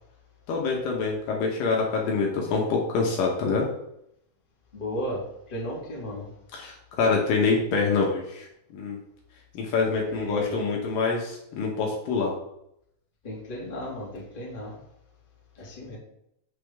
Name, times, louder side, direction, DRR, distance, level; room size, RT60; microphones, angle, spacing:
voice 1, 0.5-3.6 6.5-8.5 8.7-9.0 9.5-12.3, left 4 dB, 70° left, -1 dB, 2.6 m, -25 dB
voice 2, 4.7-6.3 10.1-10.5 13.2-14.8 15.6-16.0, equal, 15° left, -5 dB, 1.8 m, -35 dB
8.3 x 6.2 x 3.5 m, 0.78 s
omnidirectional pair, 4.4 m